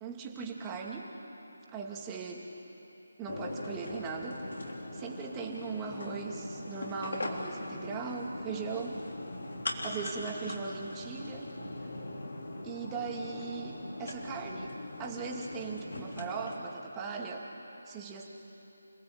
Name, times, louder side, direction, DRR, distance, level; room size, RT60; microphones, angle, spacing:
voice 1, 0.0-1.1 1.7-2.4 3.2-4.4 4.9-9.1 9.8-11.5 12.6-17.5 17.9-18.3, right 5 dB, 15° right, 0 dB, 2.2 m, -39 dB
sound 1, 3.3-16.6, left 2 dB, 60° left, 3.4 m, -40 dB
29.0 x 17.5 x 8.6 m, 3.0 s
figure-of-eight pair, 155°, 0 cm